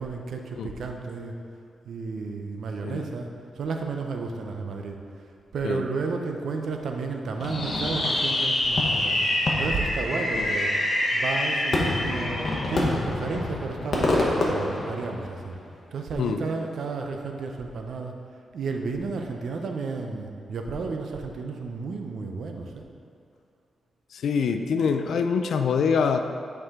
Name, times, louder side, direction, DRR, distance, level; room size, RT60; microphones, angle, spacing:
voice 1, 0.0-1.4 1.8-3.3 3.6-5.2 5.5-10.7 11.1-12.4 12.7-15.6 15.9-18.2 18.5-22.9, right 4 dB, 60° right, 3 dB, 0.6 m, -32 dB
Fireworks, 7.4-15.5, left 1 dB, 40° left, 1.0 m, -26 dB
voice 2, 24.1-26.2, left 6 dB, 70° left, 7 dB, 0.4 m, -25 dB
9.1 x 4.7 x 3.6 m, 2.3 s
wide cardioid pair, 175°, 0 cm